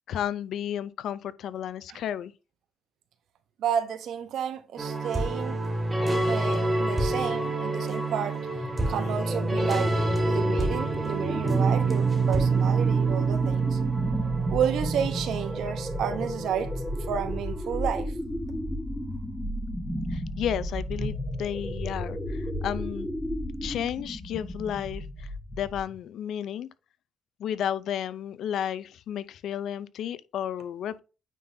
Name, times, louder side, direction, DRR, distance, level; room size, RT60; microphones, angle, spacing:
voice 1, 0.1-2.3 20.1-23.1 23.6-26.7 27.4-31.0, left 10 dB, 75° left, 0.5 m, -32 dB
voice 2, 3.6-5.6 6.3-8.4 8.9-9.9 10.2-13.8 14.5-16.7 17.1-18.1, right 8 dB, 75° right, 0.8 m, -31 dB
sound 1, 4.8-17.4, right 3 dB, 20° right, 1.9 m, -27 dB
sound 2, 8.4-26.0, equal, ahead, 1.3 m, -34 dB
9.1 x 3.8 x 2.7 m
cardioid pair, 90°, 0 cm